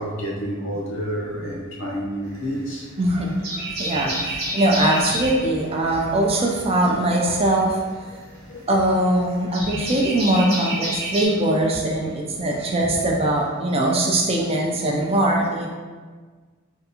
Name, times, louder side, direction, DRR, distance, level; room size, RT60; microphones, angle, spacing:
voice 1, 0.0-2.9 8.5-8.7 9.8-9.9, equal, 65° left, -4 dB, 0.7 m, -29 dB
sound 1, 2.2-2.9 3.3-5.4 7.0-11.2, right 1 dB, 45° right, 1.0 m, -29 dB
voice 2, 3.0-7.8 8.7-15.7, right 1 dB, 25° right, -1 dB, 0.4 m, -21 dB
3.4 x 2.5 x 2.8 m, 1.5 s
head